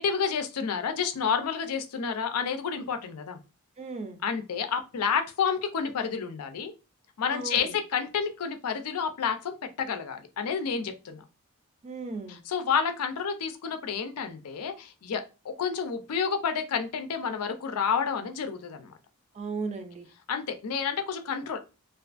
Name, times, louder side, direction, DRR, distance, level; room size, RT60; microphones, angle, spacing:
voice 1, 0.0-3.4 4.2-6.7 7.2-11.2 12.3-18.9 20.3-21.6, left 6 dB, 85° left, 0.4 m, -30 dB
voice 2, 3.8-4.2 7.3-7.7 11.8-12.4 19.3-20.1, right 4 dB, 30° right, 0.4 m, -36 dB
2.5 x 2.4 x 2.4 m
head